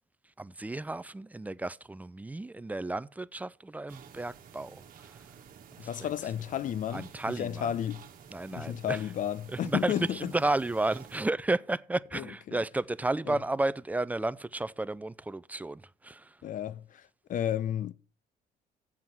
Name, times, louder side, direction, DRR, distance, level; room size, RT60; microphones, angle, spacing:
voice 1, 0.4-4.8 5.8-6.1 6.9-7.7 8.3-9.0 9.6-16.3, right 2 dB, 10° right, 0.4 m, -32 dB
sound 1, 3.9-11.3, right 7 dB, 55° right, 1.4 m, -52 dB
voice 2, 5.8-8.0 8.5-10.3 12.1-12.6 13.2-13.4 16.4-17.9, left 10 dB, 50° left, 0.7 m, -33 dB
7.7 x 7.1 x 5.9 m
cardioid pair, 110°, 17 cm